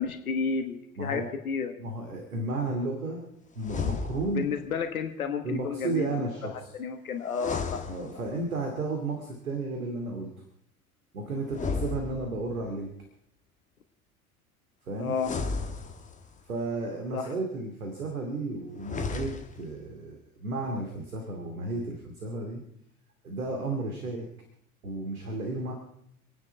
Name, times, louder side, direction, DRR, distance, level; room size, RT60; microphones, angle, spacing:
voice 1, 0.0-1.7 4.3-6.3 6.8-7.8 15.0-15.3 17.1-17.3, left 5 dB, 70° left, 7 dB, 1.4 m, -31 dB
voice 2, 1.0-1.3 1.8-3.3 3.6-4.5 5.4-6.7 7.9-10.3 11.1-12.9 14.9-15.2 16.4-22.6 23.2-24.3 24.8-25.7, right 2 dB, 75° right, 2 dB, 2.6 m, -33 dB
sound 1, 3.6-4.6 7.3-8.6 11.5-12.7 15.1-16.4 18.7-19.7, left 4 dB, 15° left, 1.5 m, -34 dB
27.5 x 9.8 x 4.6 m, 0.71 s
figure-of-eight pair, 75°, 44 cm